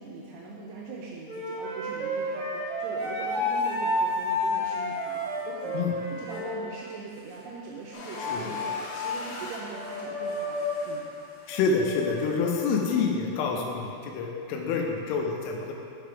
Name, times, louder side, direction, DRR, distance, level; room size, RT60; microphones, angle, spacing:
voice 1, 0.0-11.0, right 3 dB, 85° right, -4 dB, 2.4 m, -41 dB
Wind instrument woodwind instrument, 1.3-6.6, left 1 dB, 65° right, 1.9 m, -29 dB
sound 1, 3.0-3.1 3.6-4.5 5.1-5.2 6.3-7.5 8.0-13.0, left 3 dB, 55° left, 2.4 m, -36 dB
sound 2, 7.9-10.5, left 2 dB, 75° left, 3.0 m, -41 dB
voice 2, 11.5-15.7, left 4 dB, 90° left, 1 dB, 3.2 m, -27 dB
6.8 x 5.9 x 4.6 m, 2.6 s
omnidirectional pair, 5.4 m